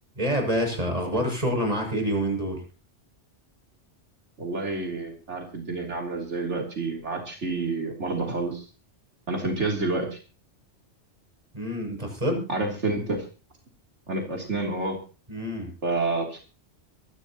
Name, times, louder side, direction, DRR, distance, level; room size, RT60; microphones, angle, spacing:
voice 1, 0.2-2.6 11.5-12.5 15.3-15.7, equal, 35° right, 3 dB, 7.2 m, -27 dB
voice 2, 4.4-8.7 9.3-10.2 12.5-13.3 14.1-15.0 15.8-16.4, right 3 dB, 85° right, 0 dB, 3.6 m, -29 dB
26.0 x 12.5 x 3.0 m, 0.35 s
omnidirectional pair, 1.2 m